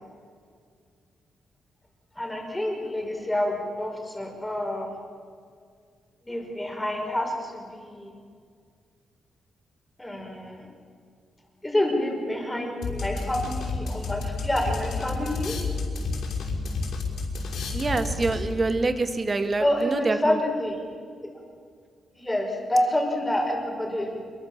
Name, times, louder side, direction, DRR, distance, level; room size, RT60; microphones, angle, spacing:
voice 1, 2.2-4.9 6.2-8.1 10.0-10.7 11.6-15.6 19.6-20.8 22.1-24.2, left 1 dB, 10° left, 1 dB, 5.4 m, -28 dB
sound 1, 12.8-18.7, left 3 dB, 65° left, 6.0 m, -31 dB
voice 2, 17.7-20.4, right 3 dB, 25° right, 8 dB, 1.8 m, -26 dB
27.0 x 22.5 x 7.5 m, 2.2 s
wide cardioid pair, 140°, 0 cm